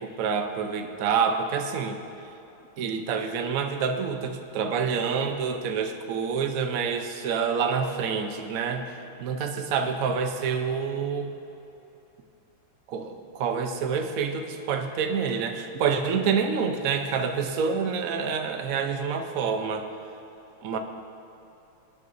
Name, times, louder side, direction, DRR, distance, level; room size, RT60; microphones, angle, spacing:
voice 1, 0.0-2.0 2.8-8.9 9.2-11.3 12.9-19.9 20.6-20.8, right 6 dB, 60° right, 5 dB, 0.9 m, -27 dB
25.5 x 9.4 x 2.7 m, 3.0 s
omnidirectional pair, 2.4 m